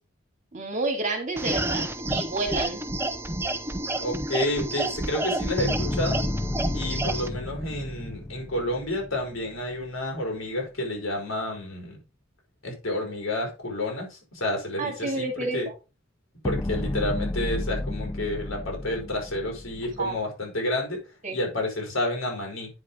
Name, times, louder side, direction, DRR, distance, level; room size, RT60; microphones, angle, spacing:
voice 1, 0.5-2.9 14.8-15.7 20.0-20.2 21.2-21.4, right 2 dB, 40° right, 4 dB, 2.4 m, -30 dB
sound 1, 1.4-7.3, right 2 dB, 10° right, 0.7 m, -30 dB
voice 2, 4.0-6.2 6.7-12.0 12.6-15.7 16.4-21.0 21.3-22.7, left 1 dB, 90° left, 1 dB, 4.5 m, -30 dB
sound 2, 5.6-9.9 16.4-20.2, left 1 dB, 15° left, 0.4 m, -32 dB
9.6 x 5.5 x 3.8 m, 0.28 s
head